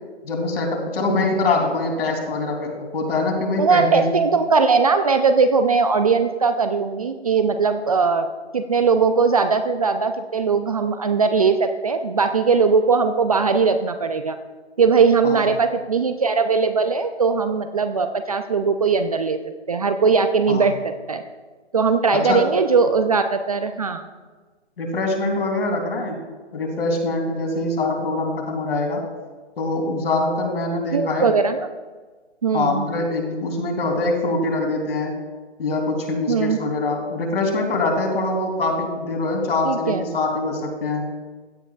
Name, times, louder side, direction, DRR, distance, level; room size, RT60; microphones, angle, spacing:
voice 1, 0.2-4.2 15.2-15.4 20.5-20.7 22.1-22.4 24.8-26.2 26.5-29.0 29.6-31.3 32.5-35.1 35.6-41.1, left 2 dB, 55° left, 1 dB, 3.1 m, -23 dB
voice 2, 3.6-8.3 8.5-14.4 14.8-19.4 19.7-21.2 21.7-24.0 30.9-31.7 32.4-32.9 36.3-36.6 39.6-40.1, right 5 dB, 35° right, 8 dB, 0.4 m, -19 dB
16.0 x 9.8 x 2.3 m, 1.3 s
figure-of-eight pair, 145°, 34 cm